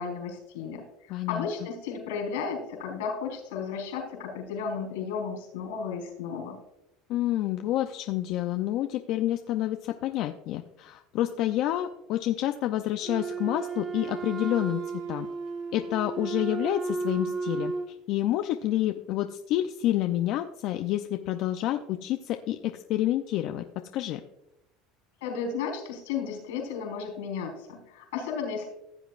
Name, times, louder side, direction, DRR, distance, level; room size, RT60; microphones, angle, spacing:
voice 1, 0.0-6.6 25.2-28.7, left 6 dB, 85° left, 2 dB, 4.2 m, -34 dB
voice 2, 1.1-1.5 7.1-14.8 15.1-15.3 15.7-17.7 18.1-23.6 23.9-24.2, left 13 dB, 60° left, 6 dB, 0.5 m, -28 dB
Wind instrument woodwind instrument, 13.0-17.9, right 4 dB, 45° right, 1.3 m, -33 dB
15.0 x 8.0 x 2.5 m, 0.88 s
supercardioid pair, 110°, 0 cm